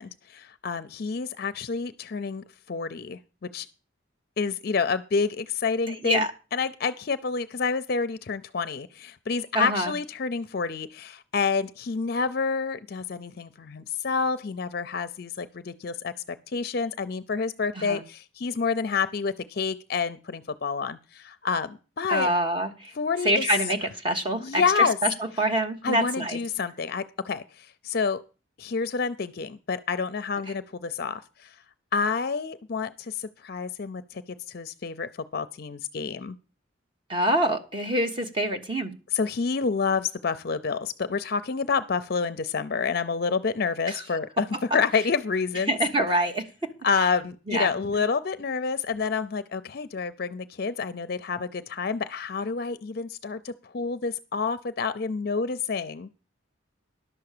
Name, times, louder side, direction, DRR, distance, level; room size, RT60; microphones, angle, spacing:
voice 1, 0.0-3.7 4.4-6.3 6.5-16.1 16.5-22.3 22.9-23.5 24.4-25.0 25.8-28.2 28.6-31.6 31.9-34.2 34.5-36.4 39.1-45.8 46.8-56.1, left 5 dB, 50° left, 12 dB, 0.5 m, -28 dB
voice 2, 5.9-6.3 9.5-9.9 17.8-18.0 22.1-22.9 23.2-24.6 25.0-25.1 25.4-26.4 37.1-38.9 43.9-44.0 45.7-46.7 47.5-47.7, right 1 dB, 25° right, 5 dB, 1.1 m, -25 dB
11.0 x 6.9 x 6.6 m, 0.33 s
head